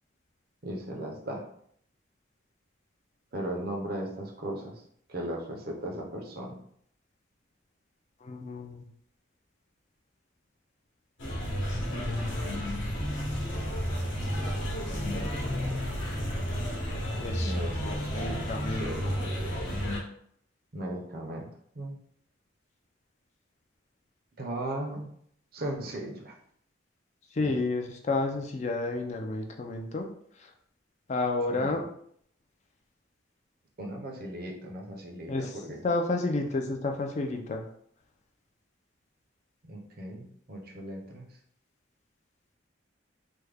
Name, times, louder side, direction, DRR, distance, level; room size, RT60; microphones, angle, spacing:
voice 1, 0.6-1.5 3.3-4.8 5.1-6.6 17.4-18.5 18.8-19.5 20.7-21.5 21.7-22.0 24.4-25.1 25.5-26.4 27.4-27.5 31.5-31.8 33.8-35.8 39.6-41.3, right 1 dB, 50° right, 1 dB, 0.6 m, -37 dB
voice 2, 8.2-8.9 11.9-12.7 17.2-19.2 27.3-30.1 30.4-30.5 31.1-31.8 35.3-35.6 35.8-37.6, left 2 dB, 35° left, 3 dB, 0.3 m, -31 dB
sound 1, 11.2-20.0, equal, 65° left, 1.0 m, -31 dB
3.3 x 2.1 x 3.3 m, 0.67 s
head